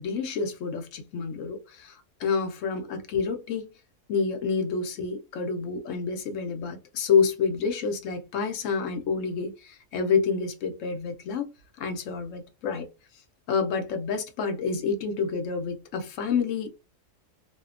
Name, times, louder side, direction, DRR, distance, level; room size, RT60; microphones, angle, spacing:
voice 1, 0.0-3.7 4.1-11.5 11.8-12.9 13.5-16.7, left 5 dB, 75° left, 0.9 m, -28 dB
2.7 x 2.1 x 2.4 m
omnidirectional pair, 1.4 m